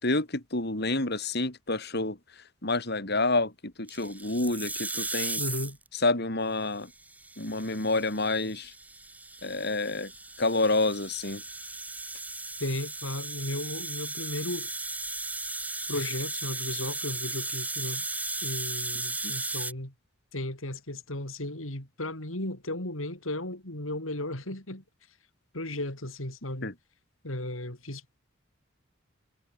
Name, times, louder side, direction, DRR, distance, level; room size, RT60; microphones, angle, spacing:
voice 1, 0.0-5.4 5.9-6.9 7.4-8.7 9.4-10.1 10.4-11.4 19.2-19.3 26.6-26.7, left 2 dB, 55° left, 4.4 m, -28 dB
sound 1, 3.9-5.9 6.9-19.7, right 2 dB, 10° right, 3.4 m, -36 dB
voice 2, 5.4-5.8 12.6-14.7 15.9-18.0 18.4-19.9 20.3-24.8 25.5-26.7 27.2-28.0, left 1 dB, 85° left, 6.3 m, -35 dB
head